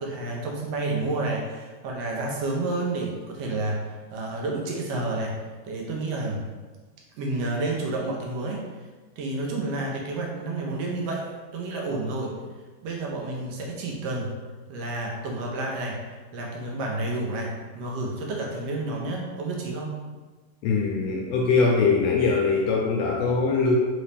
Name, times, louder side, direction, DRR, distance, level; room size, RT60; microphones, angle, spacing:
voice 1, 0.0-5.4 5.6-6.5 7.2-8.9 9.2-12.4 12.8-14.3 14.7-20.0, right 2 dB, 70° right, -1 dB, 1.7 m, -30 dB
voice 2, 20.6-23.8, left 4 dB, 80° left, -2 dB, 1.5 m, -22 dB
4.2 x 3.8 x 3.3 m, 1.3 s
omnidirectional pair, 3.3 m